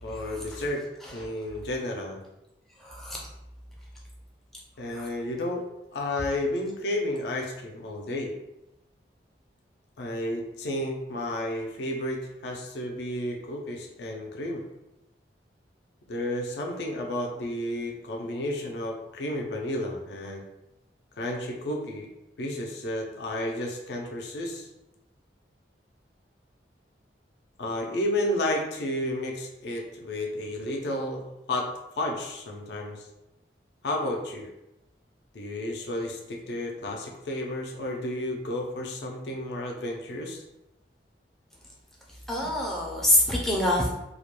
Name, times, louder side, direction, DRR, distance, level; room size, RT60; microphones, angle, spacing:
voice 1, 0.0-0.8 1.1-2.2 4.8-5.7 5.9-8.3 10.0-14.6 16.1-20.4 21.2-22.1 22.4-24.7 27.6-31.2 31.5-31.7 32.0-33.1 33.8-34.5 35.3-40.4, left 1 dB, 65° left, 1 dB, 0.4 m, -32 dB
voice 2, 2.8-3.2 4.9-5.0 42.3-43.9, left 1 dB, ahead, -4 dB, 0.4 m, -25 dB
2.3 x 2.1 x 2.9 m, 0.91 s
head